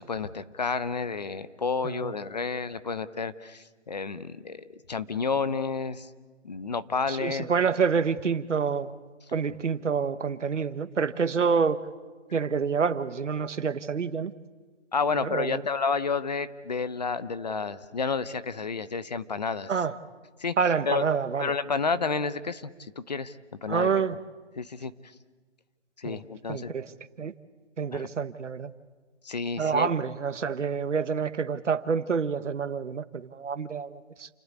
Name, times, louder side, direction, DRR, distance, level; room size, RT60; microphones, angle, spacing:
voice 1, 0.0-6.1 6.4-7.5 14.9-19.7 20.4-20.6 20.9-21.1 21.4-23.4 23.6-23.9 24.6-24.9 26.0-26.7 27.9-28.1 29.2-29.9, left 5 dB, 35° left, 14 dB, 0.7 m, -30 dB
voice 2, 7.1-8.9 9.3-11.8 12.3-14.3 15.2-15.6 19.7-19.9 20.6-21.5 23.7-24.2 26.0-26.2 26.5-26.9 27.2-27.3 27.8-28.7 29.6-34.3, right 6 dB, 80° right, 13 dB, 1.3 m, -27 dB
29.0 x 12.0 x 9.5 m, 1.4 s
hypercardioid pair, 170°, 36 cm